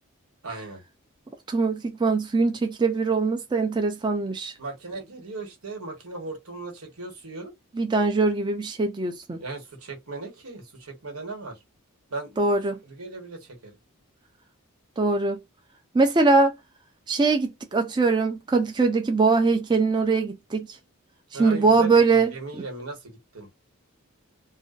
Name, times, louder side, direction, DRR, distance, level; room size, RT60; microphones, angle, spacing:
voice 1, 0.4-0.8 4.6-7.5 9.4-11.6 12.1-12.4 12.8-13.8 21.3-23.5, right 3 dB, 90° right, 1.2 m, -37 dB
voice 2, 1.5-4.5 7.8-9.4 12.4-12.8 15.0-15.4 15.9-16.5 17.1-20.7 21.4-22.3, right 3 dB, 20° right, 0.4 m, -22 dB
2.5 x 2.2 x 2.4 m
head